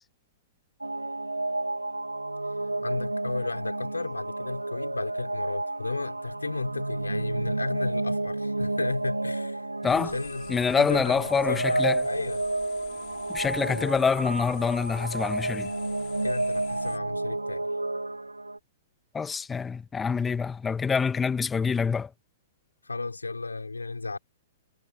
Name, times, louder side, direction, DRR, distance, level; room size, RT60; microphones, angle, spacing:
sound 1, 0.8-18.6, right 2 dB, 85° right, 1.4 m, -31 dB
voice 1, 2.5-9.7 10.0-12.5 16.2-17.7 22.8-24.2, left 3 dB, 80° left, 6.0 m, -34 dB
sound 2, 9.9-17.0, left 40 dB or more, 35° left, 6.4 m, -48 dB
voice 2, 10.5-12.0 13.3-15.7 19.1-22.1, left 5 dB, 15° left, 2.2 m, -26 dB
figure-of-eight pair, 110°, 0 cm